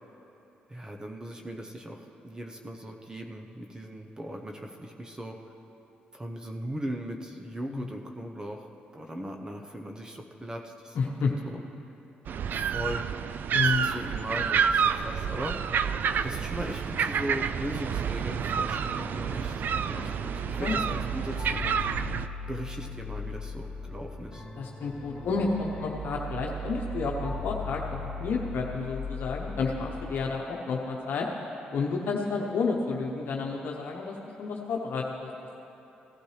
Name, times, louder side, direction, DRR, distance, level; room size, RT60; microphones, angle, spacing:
voice 1, 0.7-5.4 6.1-8.7 8.9-11.6 12.5-13.0 13.5-15.6 16.2-21.8 22.5-24.4, right 1 dB, 20° right, 2 dB, 0.9 m, -38 dB
voice 2, 10.9-11.3 13.5-13.9 20.6-20.9 24.6-31.3 31.7-35.3, left 4 dB, 70° left, -1 dB, 1.0 m, -30 dB
sound 1, 12.2-22.3, right 7 dB, 60° right, 0.3 m, -29 dB
sound 2, 18.5-30.2, equal, 30° left, 1.6 m, -38 dB
17.0 x 12.0 x 3.3 m, 3.0 s
cardioid pair, 70°, 4 cm